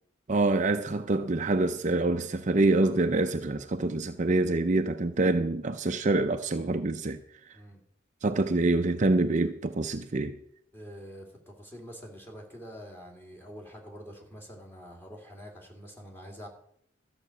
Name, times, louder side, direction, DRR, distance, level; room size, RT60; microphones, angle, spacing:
voice 1, 0.3-7.2 8.2-10.4, right 2 dB, 40° right, 0.6 m, -26 dB
voice 2, 10.7-16.5, equal, 10° left, 2.6 m, -46 dB
13.0 x 5.9 x 7.8 m
head